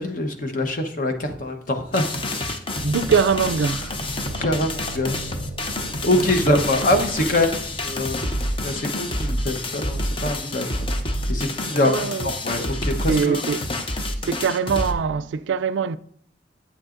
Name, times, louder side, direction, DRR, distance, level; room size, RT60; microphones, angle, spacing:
voice 1, 0.0-2.5 4.2-4.7 4.9-5.2 6.0-7.6 7.8-8.3 8.6-10.7 11.3-13.4, left 1 dB, 50° left, 1.0 m, -24 dB
sound 1, 1.9-14.9, left 1 dB, 30° left, 0.6 m, -28 dB
sound 2, 2.7-11.8, right 1 dB, 70° left, 2.9 m, -40 dB
voice 2, 2.8-3.9 6.1-6.6 11.8-12.3 13.1-13.6 14.3-16.0, right 6 dB, 90° right, 0.3 m, -23 dB
8.7 x 8.5 x 2.5 m
head